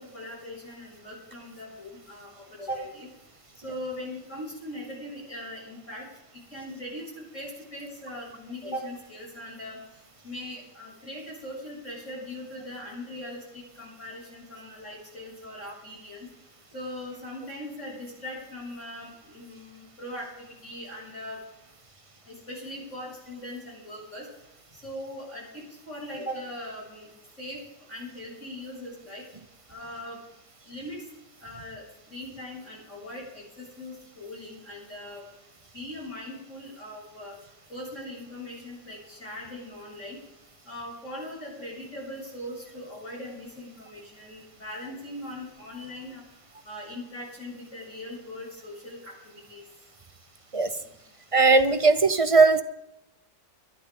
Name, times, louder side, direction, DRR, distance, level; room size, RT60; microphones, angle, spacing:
voice 1, 0.0-3.1 3.6-6.1 6.3-9.8 10.2-16.3 16.7-21.4 22.3-24.3 24.7-27.1 27.4-27.6 27.9-29.2 29.7-30.2 30.7-31.0 31.4-35.2 35.7-37.3 37.7-40.2 40.7-46.2 46.6-49.6, left 1 dB, 40° left, -4 dB, 7.6 m, -40 dB
voice 2, 51.3-52.6, right 4 dB, 40° right, 10 dB, 0.4 m, -18 dB
22.0 x 12.5 x 3.8 m, 0.87 s
omnidirectional pair, 1.9 m